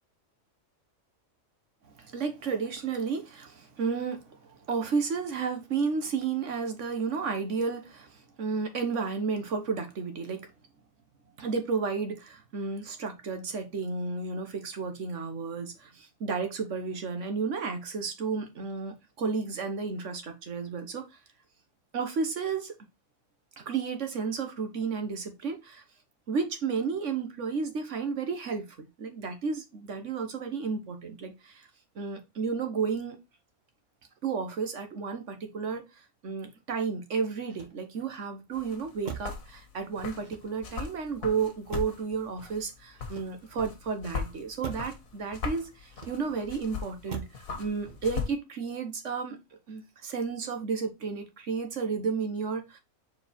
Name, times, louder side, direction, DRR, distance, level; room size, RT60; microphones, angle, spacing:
voice 1, 2.0-10.5 11.4-21.0 21.9-22.7 23.6-25.8 26.3-31.7 31.9-33.2 34.2-35.8 36.2-49.4 49.7-52.8, right 5 dB, 65° right, 1.4 m, -32 dB
Motor vehicle (road), 37.4-38.2 39.0-39.5 40.2-40.8 41.7-42.2 42.9-43.7 44.6-45.0 45.9-46.5 47.1-47.5 47.8-48.3, right 5 dB, 40° right, 1.0 m, -42 dB
sound 1, 38.5-48.3, left 5 dB, 80° left, 1.8 m, -40 dB
4.8 x 4.6 x 4.3 m
omnidirectional pair, 1.4 m